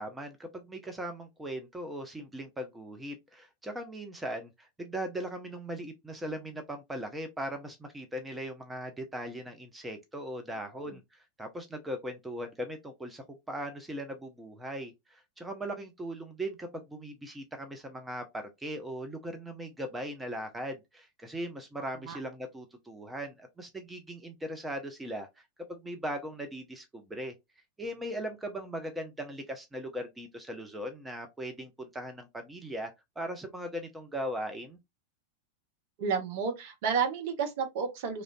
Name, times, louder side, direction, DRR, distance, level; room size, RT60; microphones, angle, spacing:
voice 1, 0.0-18.2 18.6-27.3 27.8-34.8, equal, 10° right, 0.6 m, -39 dB
voice 2, 21.8-22.2 36.0-38.2, right 6 dB, 50° right, 0.8 m, -32 dB
3.1 x 2.5 x 2.5 m
figure-of-eight pair, 90°, 0 cm